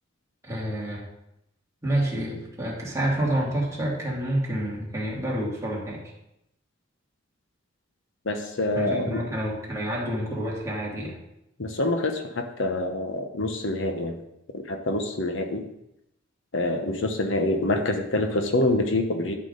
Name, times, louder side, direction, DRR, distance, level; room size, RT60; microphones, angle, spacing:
voice 1, 0.4-1.1 1.8-6.0 8.7-11.2, right 1 dB, 15° right, -5 dB, 2.6 m, -28 dB
voice 2, 8.2-9.2 11.6-14.2 14.5-15.6 16.5-19.3, left 2 dB, 70° left, 5 dB, 1.0 m, -26 dB
11.5 x 6.0 x 3.9 m, 0.83 s
head